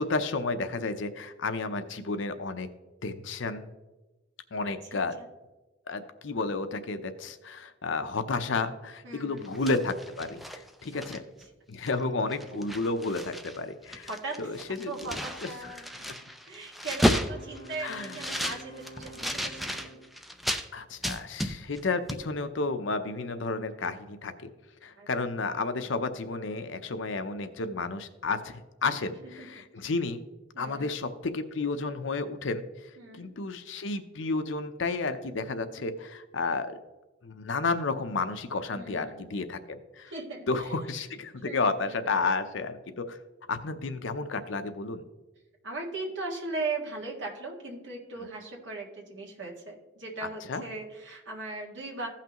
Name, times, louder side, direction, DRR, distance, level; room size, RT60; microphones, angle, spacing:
voice 1, 0.0-2.7 3.0-3.7 4.5-5.2 5.9-11.2 11.7-14.1 14.4-15.5 17.8-18.2 20.7-24.5 24.8-30.2 30.6-36.8 37.2-40.1 40.5-43.2 43.5-45.0 50.2-50.6, left 3 dB, 70° left, 9 dB, 0.7 m, -32 dB
voice 2, 9.0-9.5 10.9-11.1 14.1-14.3 14.9-16.1 16.4-20.0 25.0-25.1 29.4-29.5 30.5-31.0 33.0-33.3 38.7-39.3 40.1-40.5 41.4-42.0 45.6-52.1, right 3 dB, 65° right, -1 dB, 1.9 m, -38 dB
sound 1, 9.4-11.4 11.9-12.0 12.3-13.6 13.8-20.7 21.0-21.8 22.1-22.2, equal, ahead, 0.4 m, -33 dB
Wind instrument woodwind instrument, 17.0-20.2, right 2 dB, 20° left, 1.2 m, -48 dB
15.5 x 5.8 x 3.0 m, 1.1 s
head